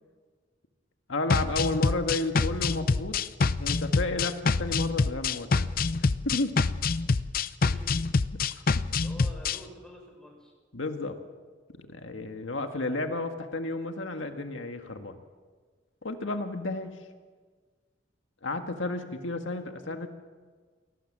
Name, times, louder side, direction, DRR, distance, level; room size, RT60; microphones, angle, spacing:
voice 1, 1.1-3.2 3.6-5.7 6.2-6.6 8.3-8.4 8.9-9.1 10.7-11.2 11.8-15.2 16.0-17.0 18.4-20.1, left 2 dB, 80° left, 5 dB, 1.7 m, -32 dB
sound 1, 1.3-9.6, left 4 dB, 50° left, 0.6 m, -26 dB
voice 2, 7.6-8.0 8.6-10.5, equal, 5° left, 0 dB, 6.8 m, -49 dB
29.0 x 19.0 x 7.4 m, 1.5 s
head